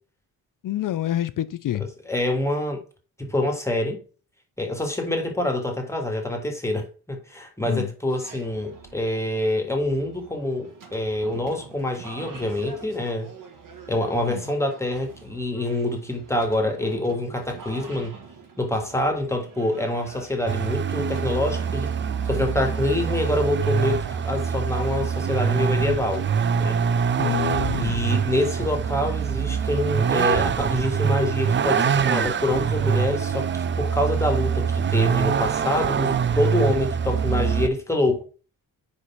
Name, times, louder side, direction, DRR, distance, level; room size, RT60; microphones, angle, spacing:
voice 1, 0.6-1.9 7.7-7.9 14.2-14.4 27.2-28.0, left 12 dB, 55° left, 0.5 m, -27 dB
voice 2, 1.8-2.8 3.2-4.0 4.6-13.3 13.9-18.2 18.6-21.9 22.3-26.2 26.6-26.8 27.7-38.2, left 1 dB, 5° left, 1.8 m, -26 dB
sound 1, 8.1-26.5, right 5 dB, 55° right, 1.6 m, -45 dB
Vehicle, 20.5-37.7, right 7 dB, 30° right, 0.4 m, -24 dB
4.8 x 4.2 x 5.5 m
cardioid pair, 95°, 38 cm